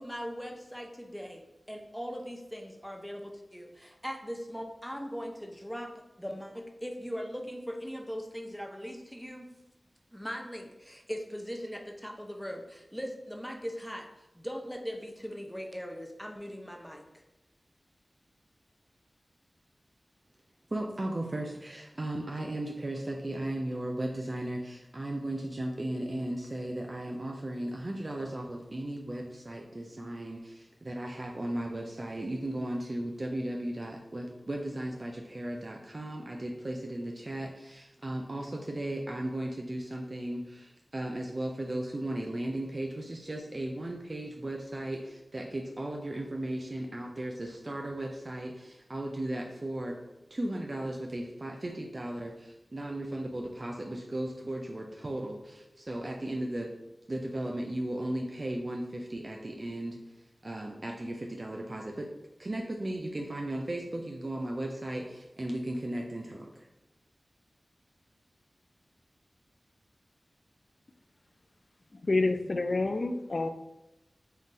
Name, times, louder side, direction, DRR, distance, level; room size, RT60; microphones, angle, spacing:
voice 1, 0.0-1.4 1.7-5.9 6.2-9.5 10.1-14.1 14.3-17.2, equal, 5° left, 3 dB, 0.6 m, -40 dB
voice 2, 20.7-50.0 50.3-56.7 57.1-60.0 60.4-62.1 62.4-66.7, right 1 dB, 45° right, 1 dB, 0.4 m, -36 dB
voice 3, 72.1-73.5, left 2 dB, 55° left, 8 dB, 0.3 m, -28 dB
3.7 x 2.4 x 4.1 m, 0.92 s
cardioid pair, 45°, 0 cm